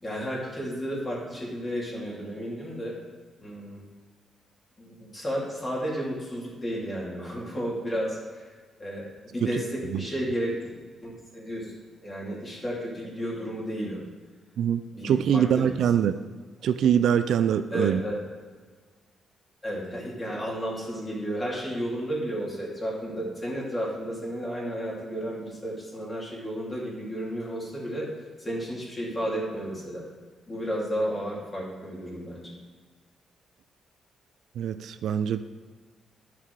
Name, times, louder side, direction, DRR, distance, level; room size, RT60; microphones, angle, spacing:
voice 1, 0.0-3.0 3.4-3.8 4.8-8.5 8.8-10.5 11.0-11.7 12.0-14.0 14.9-15.8 17.7-18.2 19.6-28.1 28.4-30.1 30.5-32.5, equal, 20° left, -4 dB, 2.7 m, -32 dB
voice 2, 14.6-16.2 16.6-18.0 34.6-35.4, right 9 dB, 75° right, 11 dB, 0.3 m, -24 dB
9.9 x 6.1 x 4.6 m, 1.5 s
cardioid pair, 105°, 0 cm